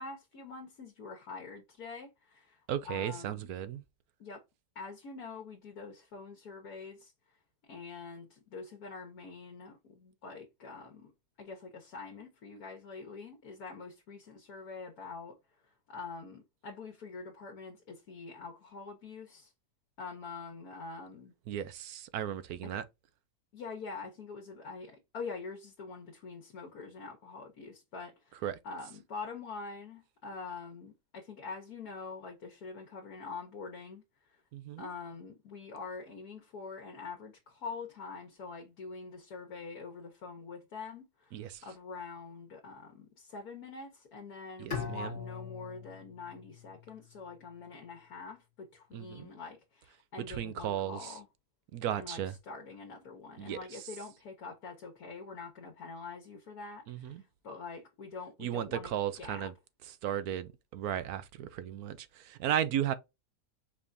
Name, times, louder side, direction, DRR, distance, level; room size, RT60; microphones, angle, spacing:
voice 1, 0.0-2.6 2.8-3.5 4.2-4.4 4.7-7.1 7.7-11.1 11.4-15.4 15.6-19.5 20.0-21.3 22.6-22.7 23.5-34.0 34.8-41.4 41.6-51.3 51.9-59.5, left 4 dB, 65° left, 1.5 m, -45 dB
voice 2, 2.7-3.8 21.5-22.8 28.4-28.6 34.5-34.9 41.3-41.6 44.6-45.2 48.9-49.3 50.3-51.2 51.7-52.3 53.4-53.8 56.9-57.2 58.4-59.5 59.8-62.9, right 10 dB, 70° right, 1.1 m, -35 dB
Bowed string instrument, 44.7-47.7, left 6 dB, 40° left, 1.1 m, -42 dB
5.0 x 3.4 x 2.6 m
omnidirectional pair, 1.7 m